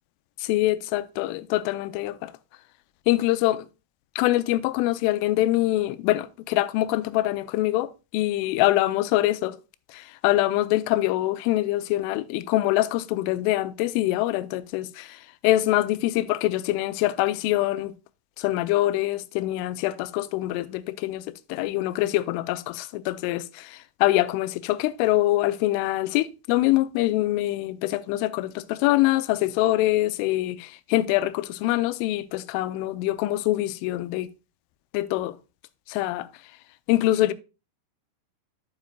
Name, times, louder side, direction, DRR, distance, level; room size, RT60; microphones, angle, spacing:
voice 1, 0.4-2.3 3.1-3.7 4.2-9.6 9.9-17.9 18.4-21.2 21.5-34.3 34.9-35.4 35.9-36.3 36.9-37.3, left 16 dB, 90° left, 3.1 m, -24 dB
11.0 x 7.2 x 2.2 m
omnidirectional pair, 5.6 m